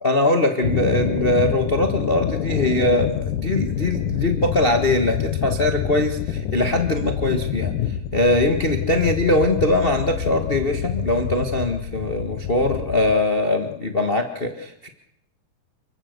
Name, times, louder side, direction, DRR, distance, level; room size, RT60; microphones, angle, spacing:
voice 1, 0.0-7.7 8.1-14.9, left 2 dB, 60° left, 5 dB, 0.6 m, -21 dB
sound 1, 0.6-13.1, left 9 dB, 75° left, 2.5 m, -27 dB
29.0 x 16.5 x 6.7 m, 0.81 s
omnidirectional pair, 3.9 m